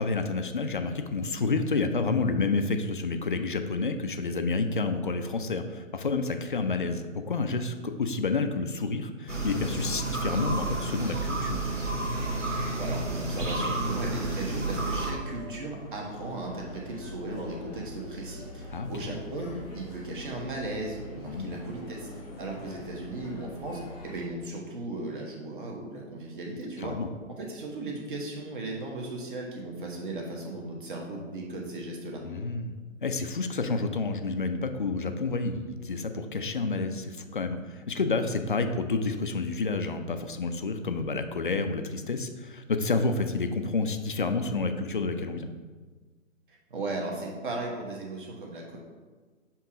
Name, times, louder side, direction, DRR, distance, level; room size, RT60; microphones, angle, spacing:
voice 1, 0.0-11.7 18.7-18.9 21.3-21.6 26.8-27.1 32.2-32.8 33.0-45.5, left 3 dB, 40° left, 7 dB, 0.4 m, -29 dB
sound 1, 9.3-15.1, right 2 dB, 65° right, 1.5 m, -31 dB
sound 2, 10.2-24.3, left 1 dB, 10° left, 0.9 m, -44 dB
voice 2, 12.5-22.1 22.4-26.9 27.4-32.2 46.5-48.8, right 2 dB, 40° right, -1 dB, 1.2 m, -36 dB
7.0 x 3.0 x 4.8 m, 1.4 s
figure-of-eight pair, 135°, 40 cm